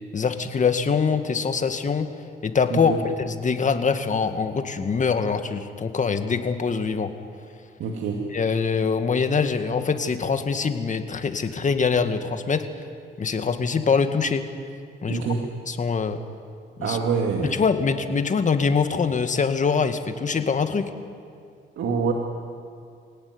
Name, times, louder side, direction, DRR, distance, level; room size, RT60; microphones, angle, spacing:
voice 1, 0.1-2.1 2.4-7.1 8.3-12.7 13.2-14.4 15.0-15.2 15.7-16.2 16.8-17.0 17.5-20.9, left 5 dB, 40° left, 8 dB, 2.0 m, -23 dB
voice 2, 2.7-3.0 7.8-8.2 15.1-15.4 16.8-17.6 21.8-22.1, right 5 dB, 75° right, 1 dB, 2.6 m, -25 dB
26.0 x 17.5 x 9.8 m, 2.3 s
cardioid pair, 90°, 20 cm